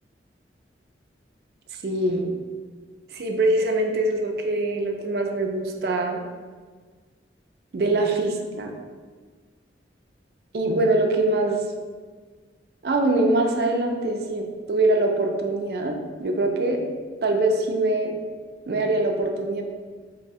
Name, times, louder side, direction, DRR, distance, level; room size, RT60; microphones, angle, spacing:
voice 1, 1.8-2.3 3.1-6.2 7.7-8.7 10.5-11.6 12.8-16.8 17.2-18.1 18.7-19.6, right 2 dB, 60° right, 2 dB, 0.4 m, -23 dB
2.7 x 2.7 x 4.1 m, 1.5 s
head